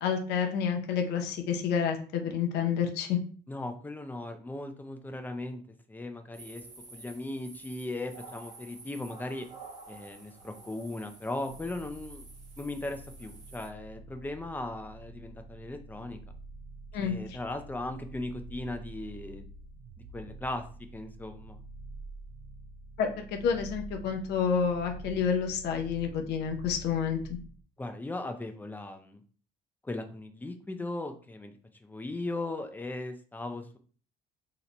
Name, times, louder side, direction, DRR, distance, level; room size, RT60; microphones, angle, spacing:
voice 1, 0.0-3.2 16.9-17.4 23.0-27.2, left 7 dB, 80° left, 3 dB, 0.6 m, -29 dB
voice 2, 3.5-5.6 5.9-6.6 6.9-9.5 9.9-12.3 12.6-16.2 17.0-19.5 20.1-20.6 20.9-21.6 27.8-29.2 29.8-31.5 31.8-33.8, left 2 dB, 10° left, 6 dB, 0.5 m, -38 dB
sound 1, 6.3-13.7, right 3 dB, 45° right, 1.2 m, -50 dB
sound 2, 11.5-27.6, right 2 dB, 85° right, 0.4 m, -47 dB
2.9 x 2.1 x 3.8 m, 0.42 s
cardioid pair, 110°, 17 cm